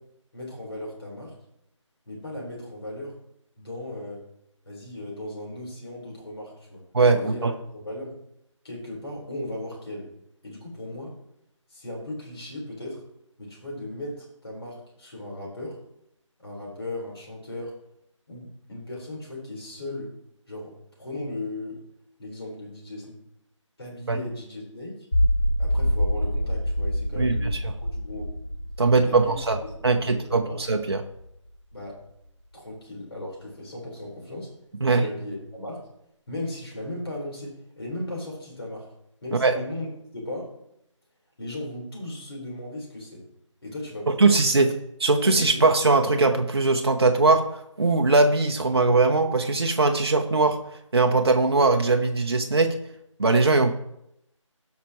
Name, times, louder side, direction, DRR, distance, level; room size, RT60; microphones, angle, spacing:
voice 1, 0.3-1.3 2.1-3.1 3.6-4.2 4.6-6.8 7.2-8.2 8.6-10.1 10.4-11.1 11.7-13.0 13.4-15.8 16.4-17.7 18.3-20.1 20.5-21.8 22.2-23.1 23.8-25.1 25.6-28.3 28.9-29.3 29.6-30.6 31.7-32.0 32.5-34.5 34.8-35.8 36.3-38.9 39.2-40.5 41.4-43.2 43.6-44.4 45.2-45.6, left 1 dB, 50° left, -3 dB, 4.4 m, -37 dB
voice 2, 6.9-7.5 24.1-24.2 27.2-27.6 28.8-29.6 29.8-31.1 34.8-35.0 39.3-39.6 44.1-44.7 45.0-50.6 50.9-52.7 53.2-53.7, right 3 dB, 50° right, 4 dB, 0.8 m, -20 dB
sound 1, 25.1-31.2, equal, 20° left, 2.0 m, -26 dB
17.0 x 5.9 x 3.1 m, 0.79 s
figure-of-eight pair, 170°, 16 cm